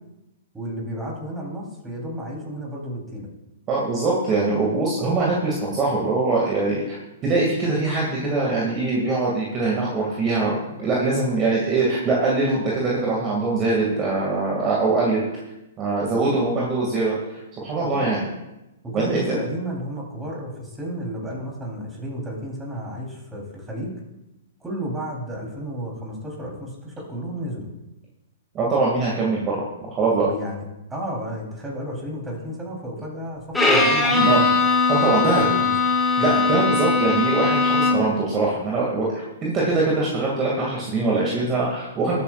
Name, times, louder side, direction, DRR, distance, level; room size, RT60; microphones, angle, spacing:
voice 1, 0.5-3.3 16.0-16.3 17.8-18.0 18.8-23.9 24.6-27.7 30.1-30.6 30.9-34.6 35.2-35.7, equal, 10° right, -3 dB, 3.6 m, -32 dB
voice 2, 3.7-15.2 15.8-18.3 18.9-19.4 28.5-30.3 34.2-34.4 34.9-35.5 36.2-42.2, right 3 dB, 25° right, -4 dB, 2.3 m, -23 dB
Bowed string instrument, 33.5-38.2, left 3 dB, 5° left, 2.0 m, -20 dB
20.0 x 8.5 x 2.5 m, 0.95 s
hypercardioid pair, 120°, 0 cm